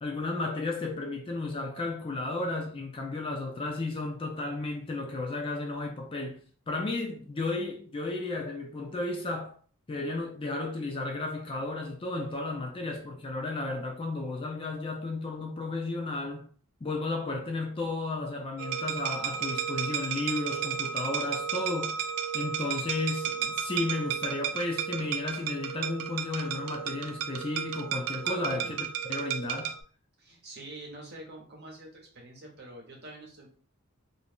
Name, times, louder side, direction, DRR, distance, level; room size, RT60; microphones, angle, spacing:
voice 1, 0.0-6.4 6.7-9.5 9.9-16.5 16.8-22.0 22.3-28.8 29.1-29.8, left 2 dB, 25° left, 0.3 m, -33 dB
sound 1, 18.6-29.8, right 8 dB, 75° right, 0.3 m, -33 dB
voice 2, 30.2-33.5, right 2 dB, 45° right, 1.0 m, -46 dB
2.5 x 2.3 x 3.5 m
head